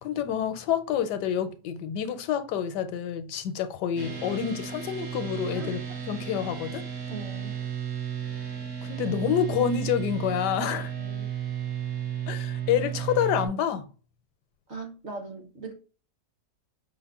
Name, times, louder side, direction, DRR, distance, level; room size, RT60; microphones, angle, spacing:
voice 1, 0.0-5.8 6.1-6.9 8.8-10.9 12.3-13.9, left 9 dB, 80° left, 1.2 m, -28 dB
sound 1, 4.0-13.5, right 9 dB, 80° right, 1.8 m, -34 dB
voice 2, 5.4-5.8 7.1-7.6 11.0-11.3 14.7-15.7, right 3 dB, 50° right, 0.9 m, -40 dB
5.6 x 2.1 x 3.5 m
omnidirectional pair, 1.8 m